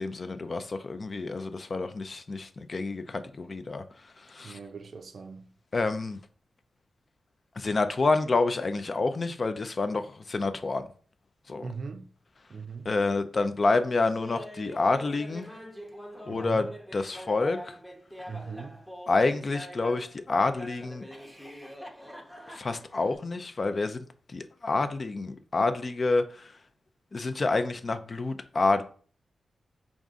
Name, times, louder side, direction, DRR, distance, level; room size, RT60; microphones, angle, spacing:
voice 1, 0.0-3.8 4.3-4.6 5.7-6.2 7.6-10.8 11.5-11.7 12.9-15.5 16.3-16.7 16.9-17.7 19.1-21.0 22.5-24.0 24.3-26.2 27.1-28.8, left 3 dB, 40° left, 0.4 m, -28 dB
voice 2, 4.4-5.5 11.6-12.0 12.5-12.9 16.3-16.7 18.3-18.8, right 5 dB, 55° right, 0.4 m, -39 dB
Laughter, 14.2-20.1 20.6-23.2, equal, 5° left, 0.7 m, -44 dB
5.1 x 2.4 x 3.6 m
wide cardioid pair, 105°, 0 cm